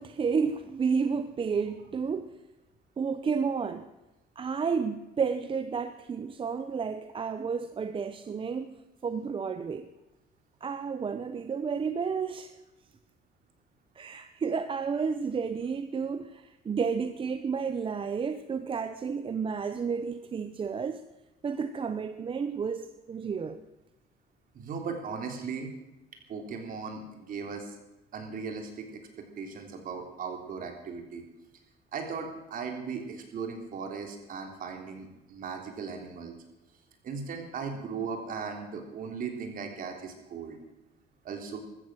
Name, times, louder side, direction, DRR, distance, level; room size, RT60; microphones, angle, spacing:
voice 1, 0.0-2.4 3.0-3.9 4.4-9.9 10.6-12.6 13.9-21.0 21.4-23.6, right 5 dB, 30° right, 0.8 m, -31 dB
voice 2, 24.5-25.7 26.3-27.8 28.1-31.2 31.9-36.3 37.0-40.6 41.2-41.6, right 5 dB, 55° right, 3.5 m, -37 dB
15.5 x 13.5 x 6.3 m
cardioid pair, 110°, 17 cm